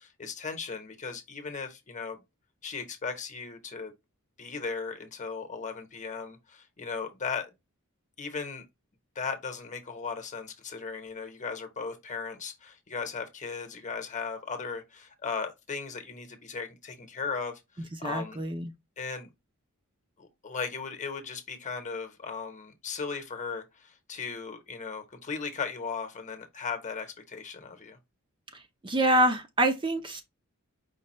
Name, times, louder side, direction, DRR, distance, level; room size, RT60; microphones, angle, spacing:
voice 1, 0.0-2.2 2.6-3.9 4.4-7.5 8.2-8.6 9.1-18.4 19.0-19.3 20.2-28.0, left 5 dB, 35° left, 1.0 m, -37 dB
voice 2, 18.0-18.7 28.8-30.2, right 1 dB, 20° right, 0.5 m, -26 dB
5.2 x 2.3 x 4.2 m
head